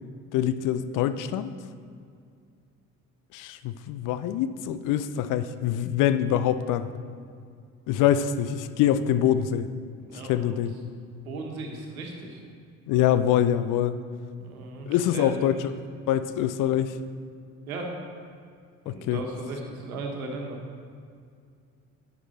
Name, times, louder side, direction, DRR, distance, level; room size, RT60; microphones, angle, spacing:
voice 1, 0.3-1.5 3.3-6.9 7.9-9.7 10.2-10.7 12.9-14.0 14.8-15.7 16.1-16.9 18.9-19.2, left 10 dB, 45° left, 12 dB, 0.6 m, -24 dB
voice 2, 10.1-10.5 11.2-12.4 14.4-15.5 17.7-17.9 18.8-20.6, right 3 dB, 75° right, 2 dB, 1.5 m, -36 dB
11.0 x 8.5 x 4.2 m, 2.2 s
figure-of-eight pair, 50°, 43 cm